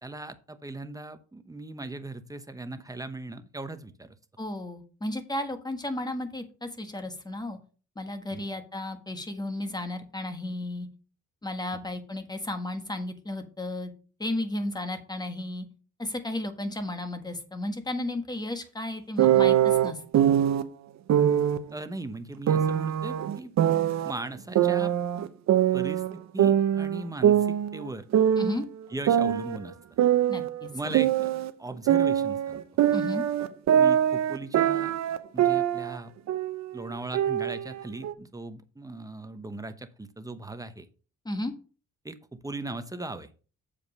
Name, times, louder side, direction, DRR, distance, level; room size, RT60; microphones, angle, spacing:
voice 1, 0.0-4.1 8.3-8.4 21.7-23.5 24.0-24.9 25.7-28.1 28.9-29.7 30.7-31.3 31.6-32.6 33.7-35.0 35.3-36.1 36.7-40.9 42.0-43.3, right 2 dB, 10° right, 9 dB, 0.9 m, -38 dB
voice 2, 4.4-7.6 7.9-10.9 11.4-13.9 14.2-15.7 16.0-20.0 28.3-28.6 30.3-31.1 32.9-33.3 41.2-41.5, left 1 dB, 15° left, 7 dB, 1.5 m, -33 dB
sound 1, 19.2-20.6 21.1-21.6 22.5-24.1 24.6-26.1 26.4-28.6 29.1-31.5 31.9-36.0 36.3-36.6 37.1-38.1, right 10 dB, 65° right, 0.8 m, -23 dB
7.4 x 5.0 x 5.4 m, 0.37 s
cardioid pair, 90°, 30 cm